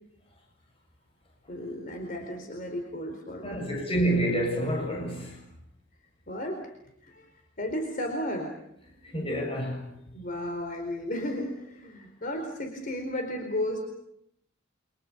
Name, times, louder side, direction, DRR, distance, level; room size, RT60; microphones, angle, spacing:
voice 1, 1.5-3.8 6.3-6.6 7.0-7.3 7.6-8.5 10.1-13.8, left 1 dB, 45° left, 4.6 m, -34 dB
voice 2, 3.4-5.4 9.1-9.9, right 1 dB, 30° left, 7.4 m, -28 dB
29.0 x 27.0 x 7.0 m
head